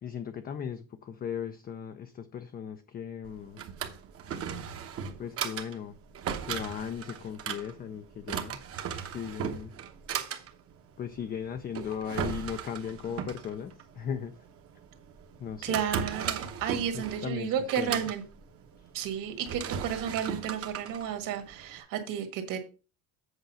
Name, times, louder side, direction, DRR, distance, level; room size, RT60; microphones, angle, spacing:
voice 1, 0.0-3.6 5.2-6.0 6.4-8.6 9.1-9.7 11.0-14.3 15.4-15.8 16.9-18.0, left 8 dB, 25° left, 0.4 m, -37 dB
Drawer open or close, 3.2-21.8, right 7 dB, 35° right, 0.9 m, -37 dB
voice 2, 15.6-18.2 18.9-22.6, right 8 dB, 55° right, 1.8 m, -32 dB
8.1 x 5.0 x 5.5 m
cardioid pair, 170°, 38 cm